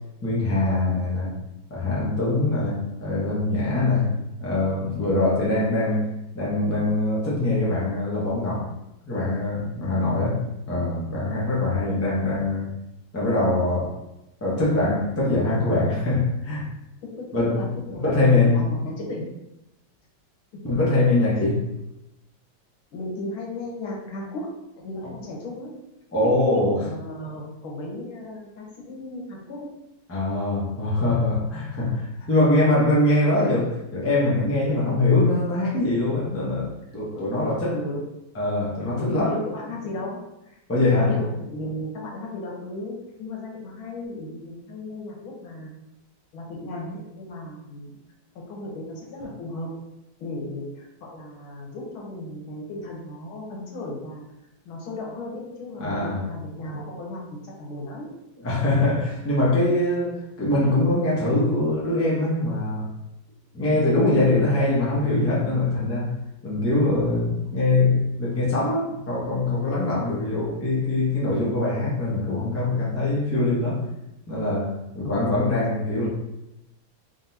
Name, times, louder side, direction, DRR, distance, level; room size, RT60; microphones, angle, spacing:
voice 1, 0.2-1.4 1.7-6.1 6.3-8.7 9.1-10.4 10.7-12.7 13.1-13.9 14.4-16.7 17.3-17.7 18.0-18.6 20.6-21.7 26.1-26.8 30.1-37.8 38.3-39.3 40.7-41.1 55.8-56.3 58.4-62.9 63.5-66.2 66.4-73.9 74.3-76.1, left 2 dB, 20° left, -6 dB, 0.4 m, -23 dB
voice 2, 17.5-19.3 22.9-24.5 24.8-25.8 26.5-29.7 37.1-37.3 37.7-38.0 39.0-45.7 46.3-47.9 48.5-49.7 50.2-54.2 54.7-58.1 75.0-75.3, left 1 dB, 85° left, -2 dB, 1.8 m, -35 dB
3.8 x 3.7 x 2.7 m, 0.90 s
omnidirectional pair, 2.2 m